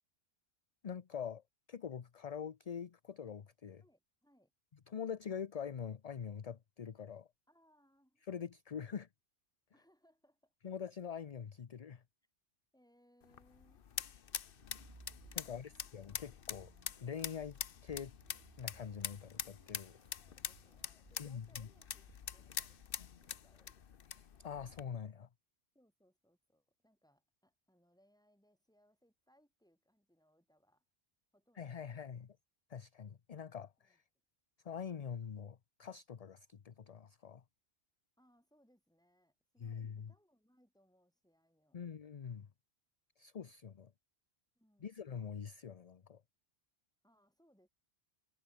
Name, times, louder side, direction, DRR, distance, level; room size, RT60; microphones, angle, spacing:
voice 1, 0.8-1.4 1.7-3.8 4.9-7.3 8.3-9.1 10.6-12.0 15.3-16.7 17.0-18.1 18.6-20.0 21.2-21.7 24.4-25.3 31.6-32.3 32.7-34.0 34.6-37.4 39.6-40.1 41.7-42.5 43.2-43.9 44.8-46.2, left 7 dB, 40° left, 0.7 m, -44 dB
voice 2, 3.8-4.5 7.5-8.2 9.7-10.5 12.7-13.8 20.2-23.9 25.7-30.8 31.3-32.1 33.8-34.0 38.2-41.8 44.6-45.1 47.0-47.7, equal, 5° left, 5.9 m, -72 dB
sound 1, 13.2-24.8, left 8 dB, 60° left, 1.0 m, -45 dB
sound 2, 14.4-15.8 16.3-23.3, right 3 dB, 30° right, 1.4 m, -64 dB
omnidirectional pair, 1.1 m